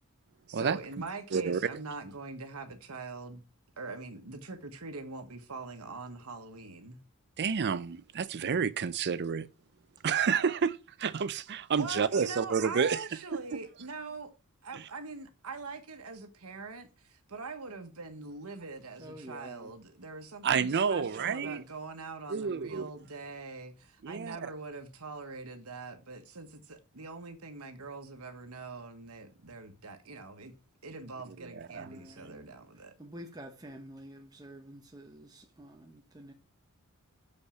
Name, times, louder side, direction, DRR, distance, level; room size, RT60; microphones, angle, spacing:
voice 1, 0.5-3.4 3.8-7.0 11.8-14.3 14.6-30.5 30.8-32.9, right 3 dB, 75° right, 1.3 m, -43 dB
voice 2, 7.4-9.5 10.0-13.1 13.5-13.6 14.7-14.8 20.4-21.6 22.3-22.9 24.0-24.4 31.4-31.9, right 6 dB, 50° right, 0.5 m, -30 dB
voice 3, 19.0-19.7 31.8-36.3, right 1 dB, 20° right, 0.9 m, -49 dB
6.5 x 5.3 x 5.7 m
head